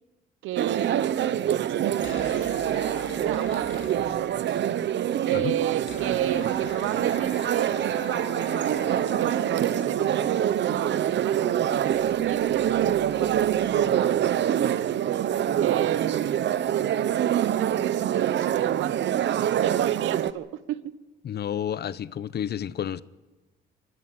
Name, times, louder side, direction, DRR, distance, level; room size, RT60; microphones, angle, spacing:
voice 1, 0.4-1.2 1.5-4.6 5.2-14.8 15.6-16.5 17.4-20.9, right 13 dB, 90° right, 0.9 m, -33 dB
sound 1, 0.6-20.3, right 10 dB, 65° right, 0.9 m, -25 dB
sound 2, 1.9-4.6 4.9-5.0 5.1-14.6, left 8 dB, 80° left, 2.0 m, -44 dB
voice 2, 21.2-23.0, left 9 dB, 55° left, 0.8 m, -30 dB
24.0 x 13.0 x 9.6 m
cardioid pair, 90°, 20 cm